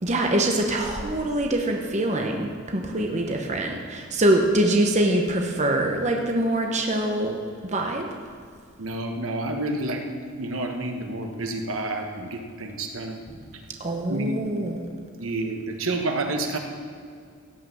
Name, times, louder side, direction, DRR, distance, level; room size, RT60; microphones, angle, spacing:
voice 1, 0.0-8.1 13.8-14.9, right 1 dB, 35° right, 2 dB, 1.0 m, -24 dB
voice 2, 8.8-10.0 10.4-13.2 13.5-13.6 14.1-14.4 15.2-16.6, right 2 dB, 70° right, 3 dB, 1.3 m, -29 dB
16.5 x 5.8 x 7.1 m, 2.2 s
head